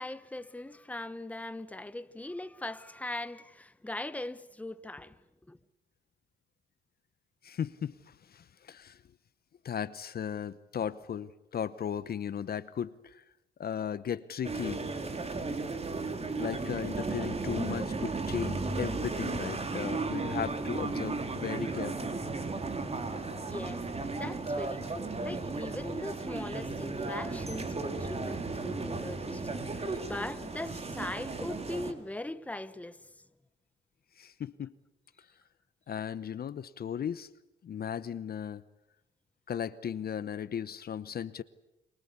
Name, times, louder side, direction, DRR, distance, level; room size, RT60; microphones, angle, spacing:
voice 1, 0.0-5.2 5.5-5.6 21.0-21.1 23.3-33.1, left 2 dB, 5° left, 1.2 m, -40 dB
voice 2, 7.4-9.0 9.6-13.2 13.6-14.8 16.4-22.2 34.2-34.7 35.9-37.3 37.6-38.6 39.5-41.4, left 8 dB, 50° left, 1.0 m, -36 dB
sound 1, 14.4-31.9, right 3 dB, 30° right, 3.2 m, -35 dB
29.0 x 23.5 x 8.4 m
cardioid pair, 90°, 20 cm